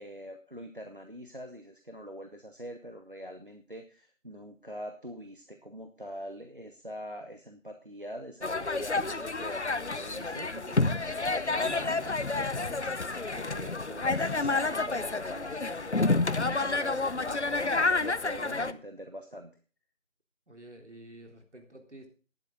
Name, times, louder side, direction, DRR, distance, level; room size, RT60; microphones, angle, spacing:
voice 1, 0.0-19.5, equal, 40° right, 6 dB, 1.0 m, -44 dB
sound 1, 8.4-18.7, left 3 dB, 60° left, 0.8 m, -29 dB
voice 2, 20.5-22.1, right 1 dB, 60° right, 3 dB, 3.5 m, -50 dB
12.5 x 11.0 x 3.8 m, 0.37 s
figure-of-eight pair, 180°, 40 cm